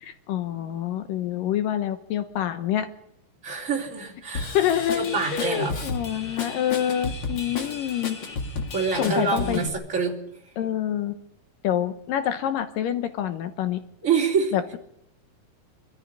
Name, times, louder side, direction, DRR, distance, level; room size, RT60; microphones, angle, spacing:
voice 1, 0.0-2.9 4.5-8.2 8.9-9.6 10.6-11.1 11.6-13.8 14.5-14.8, left 10 dB, 75° left, 9 dB, 2.6 m, -27 dB
voice 2, 3.4-4.6 4.9-5.8 8.7-10.1 10.4-10.5 14.0-14.5, right 5 dB, 20° right, -1 dB, 3.6 m, -26 dB
Drum kit / Drum, 4.3-9.7, left 3 dB, 40° left, 1.9 m, -32 dB
23.5 x 13.5 x 9.9 m, 0.77 s
omnidirectional pair, 4.0 m